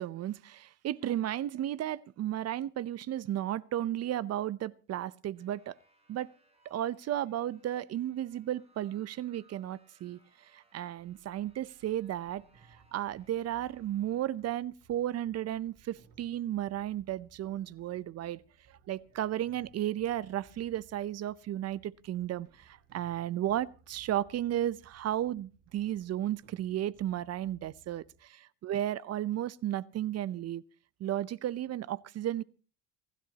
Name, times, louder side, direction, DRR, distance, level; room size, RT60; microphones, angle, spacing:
voice 1, 0.0-5.8 6.1-6.3 6.6-12.4 12.9-18.4 18.7-30.6 31.0-32.4, right 12 dB, 45° right, 0.7 m, -34 dB
sound 1, 5.3-14.3, right 2 dB, 15° right, 5.3 m, -68 dB
sound 2, 11.0-28.2, right 4 dB, 70° right, 6.1 m, -63 dB
28.5 x 11.5 x 2.9 m
supercardioid pair, 95°, 35 cm